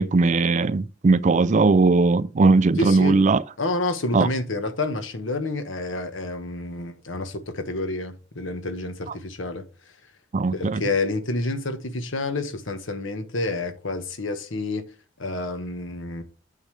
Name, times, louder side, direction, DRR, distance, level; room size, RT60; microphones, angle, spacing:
voice 1, 0.0-3.4 4.1-4.3 10.3-10.8, right 3 dB, 40° right, 0.4 m, -19 dB
voice 2, 2.8-3.2 3.6-9.6 10.5-14.8 15.2-16.2, left 2 dB, 75° left, 1.3 m, -29 dB
9.0 x 6.9 x 3.3 m
head